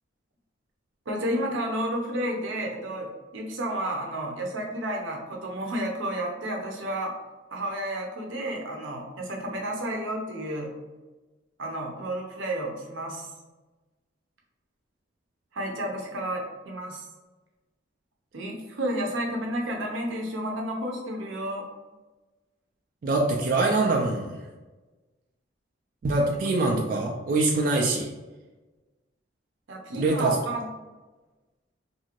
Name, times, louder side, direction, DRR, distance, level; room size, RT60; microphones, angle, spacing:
voice 1, 1.1-7.1 7.5-10.7 11.6-13.3 15.5-17.0 18.3-21.7 29.7-30.6, right 1 dB, 85° right, 0 dB, 0.6 m, -31 dB
voice 2, 23.0-24.4 26.0-28.1 29.9-30.4, right 2 dB, 45° right, 0 dB, 0.3 m, -24 dB
2.6 x 2.4 x 2.9 m, 1.2 s
head